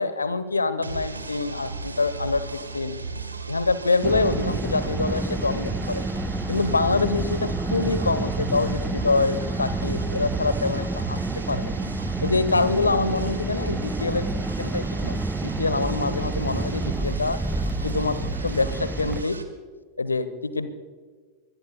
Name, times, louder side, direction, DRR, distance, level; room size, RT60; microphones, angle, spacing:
voice 1, 0.0-3.0 3.5-6.0 6.5-11.7 12.2-14.3 14.6-17.4 17.8-18.2 18.4-19.4 20.0-20.7, left 3 dB, 80° left, 14 dB, 1.1 m, -25 dB
sound 1, 0.8-19.4, right 3 dB, 80° right, 1.7 m, -36 dB
Car, 4.0-19.2, right 2 dB, 10° right, 0.5 m, -29 dB
26.5 x 21.0 x 2.2 m, 1.5 s
figure-of-eight pair, 90°, 0 cm